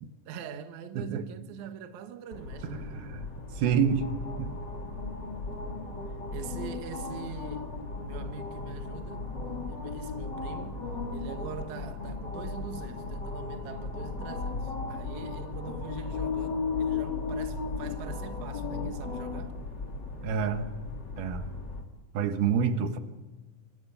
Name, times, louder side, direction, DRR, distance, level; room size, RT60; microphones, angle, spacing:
voice 1, 0.3-3.0 6.3-7.8 8.0-9.3 9.7-10.9 11.1-19.5, right 7 dB, 60° right, 2.4 m, -43 dB
voice 2, 1.0-1.3 2.6-3.3 3.6-4.6 20.2-20.7 21.2-21.5 22.1-23.0, right 7 dB, 85° right, 3.2 m, -28 dB
sound 1, 2.3-21.8, left 4 dB, 30° left, 2.9 m, -36 dB
27.0 x 25.5 x 5.6 m
omnidirectional pair, 4.3 m